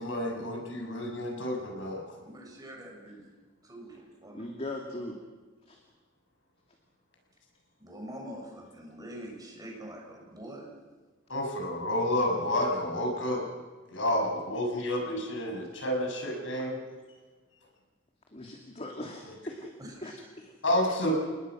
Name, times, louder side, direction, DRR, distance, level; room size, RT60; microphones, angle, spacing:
voice 1, 0.0-2.0 11.3-13.4 13.9-16.7 20.6-21.1, left 1 dB, 70° left, 1 dB, 6.5 m, -30 dB
voice 2, 2.2-3.2 3.6-4.4 7.8-10.7 19.8-20.2, right 1 dB, 20° right, -1 dB, 6.8 m, -44 dB
voice 3, 4.3-5.2 5.7-5.8 18.3-19.7 20.0-20.5 20.8-21.1, left 1 dB, 30° left, 2 dB, 2.5 m, -40 dB
29.0 x 20.0 x 6.2 m, 1.4 s
head